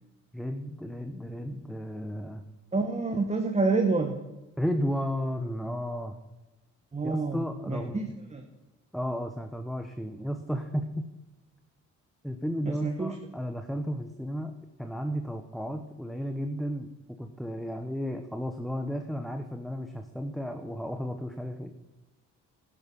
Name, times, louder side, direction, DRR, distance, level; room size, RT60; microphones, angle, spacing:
voice 1, 0.3-2.4 4.6-6.2 7.0-8.0 8.9-11.1 12.2-16.9 17.2-21.7, equal, ahead, 6 dB, 1.0 m, -33 dB
voice 2, 2.7-4.2 6.9-8.4 12.6-13.2, right 3 dB, 20° right, 5 dB, 1.4 m, -28 dB
12.0 x 11.0 x 5.5 m, 1.1 s
cardioid pair, 90°, 30 cm